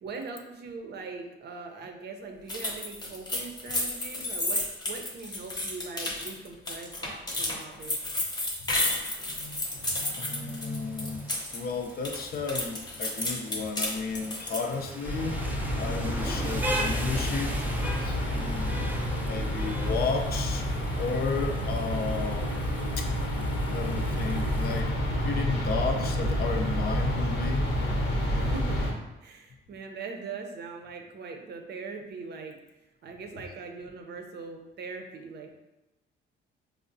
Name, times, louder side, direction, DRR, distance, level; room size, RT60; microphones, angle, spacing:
voice 1, 0.0-8.0 28.3-32.6 33.0-35.5, right 4 dB, 55° right, 3 dB, 0.6 m, -41 dB
sound 1, 2.5-11.6 11.9-14.7, left 2 dB, 20° left, 0.8 m, -32 dB
voice 2, 9.3-15.3 15.8-17.6 18.0-20.7 20.9-22.5 23.0-23.1 23.6-24.9 25.2-27.7, left 4 dB, 50° left, 5 dB, 0.5 m, -33 dB
Rain, 9.6-24.8, right 1 dB, 10° right, 0.4 m, -40 dB
sound 2, 15.0-28.9, equal, 80° left, 0.9 m, -29 dB
4.6 x 2.0 x 2.6 m, 0.98 s
cardioid pair, 90°, 20 cm